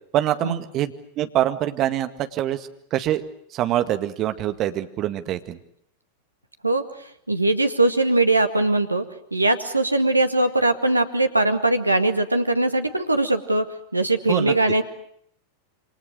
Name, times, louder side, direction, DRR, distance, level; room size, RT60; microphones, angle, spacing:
voice 1, 0.1-3.3 3.5-5.6 14.3-14.5, right 12 dB, 35° right, 9 dB, 1.9 m, -25 dB
voice 2, 6.6-9.0 9.3-13.7 13.9-14.8, right 2 dB, 85° right, 7 dB, 2.0 m, -21 dB
27.5 x 25.5 x 6.6 m, 0.69 s
figure-of-eight pair, 90°, 0 cm